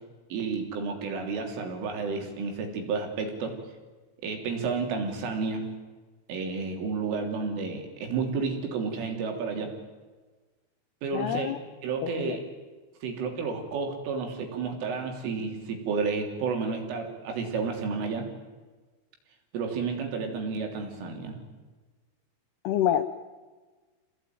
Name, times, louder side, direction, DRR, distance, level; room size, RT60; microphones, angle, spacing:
voice 1, 0.3-3.6 4.2-5.7 6.3-9.7 11.0-11.5 11.8-12.4 13.0-18.3 19.5-21.4, right 4 dB, 70° right, 3 dB, 5.7 m, -31 dB
voice 2, 11.1-11.6 12.0-12.4 22.6-23.0, left 11 dB, 80° left, 10 dB, 2.3 m, -27 dB
28.0 x 18.5 x 9.4 m, 1.3 s
omnidirectional pair, 6.0 m